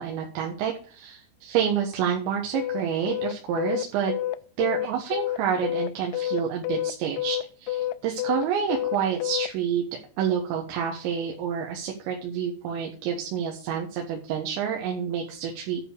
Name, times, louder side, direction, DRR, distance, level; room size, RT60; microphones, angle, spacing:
voice 1, 0.0-4.1 4.6-9.9 10.2-15.9, right 8 dB, 80° right, 1 dB, 3.7 m, -28 dB
sound 1, 2.5-9.5, left 13 dB, 90° left, 3.0 m, -28 dB
11.0 x 5.0 x 6.5 m, 0.43 s
omnidirectional pair, 5.2 m